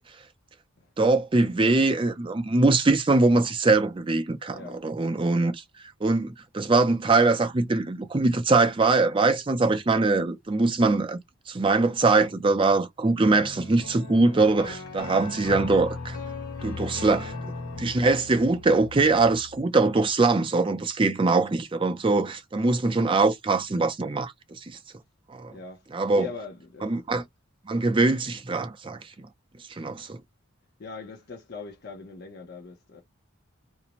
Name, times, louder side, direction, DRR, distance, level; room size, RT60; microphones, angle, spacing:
voice 1, 1.0-5.6 6.0-11.2 11.5-16.2 16.6-17.5 17.8-24.8 25.3-25.5 25.9-26.3 26.8-27.2 27.7-29.3 29.7-30.2, right 3 dB, 25° right, 0.4 m, -22 dB
sound 1, 13.2-19.6, left 3 dB, 90° left, 1.1 m, -38 dB
voice 2, 25.5-25.8 26.1-27.0 30.0-30.1 30.8-33.0, left 4 dB, 45° left, 0.6 m, -41 dB
2.5 x 2.1 x 2.8 m
head